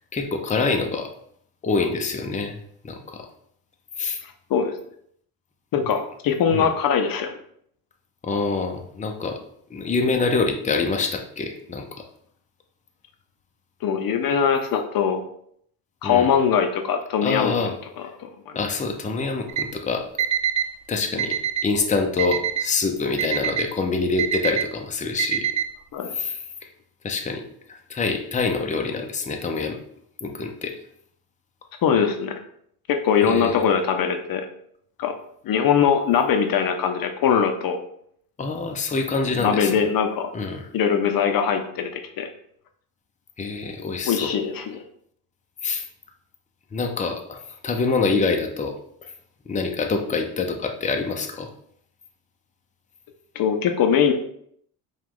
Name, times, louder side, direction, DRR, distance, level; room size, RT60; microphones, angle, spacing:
voice 1, 0.1-1.1 1.6-2.6 2.8-3.3 4.0-4.2 6.5-6.7 8.2-9.4 9.7-12.0 16.0-16.3 17.2-17.8 18.5-20.0 20.9-21.4 21.6-25.5 26.1-26.4 27.0-27.4 27.7-29.8 30.2-30.7 33.2-33.7 38.4-39.7 40.3-40.7 43.4-44.3 45.6-45.8 46.7-47.4 47.6-48.7 49.0-49.1 49.5-51.5, left 4 dB, 20° left, 3 dB, 0.6 m, -25 dB
voice 2, 5.7-7.3 13.8-15.2 16.0-17.7 18.2-18.5 25.9-26.2 31.8-32.3 32.9-34.5 35.0-35.1 35.4-37.8 39.4-40.3 40.7-41.9 42.2-42.3 44.0-44.8 53.4-54.1, left 7 dB, 60° left, 6 dB, 0.6 m, -21 dB
Alarm, 19.5-19.6 20.2-20.7 21.2-21.7 22.2-22.7 23.2-23.7 24.2-24.7 25.2-25.7, right 9 dB, 50° right, 0.4 m, -24 dB
4.8 x 2.4 x 3.7 m, 0.67 s
cardioid pair, 90°, 39 cm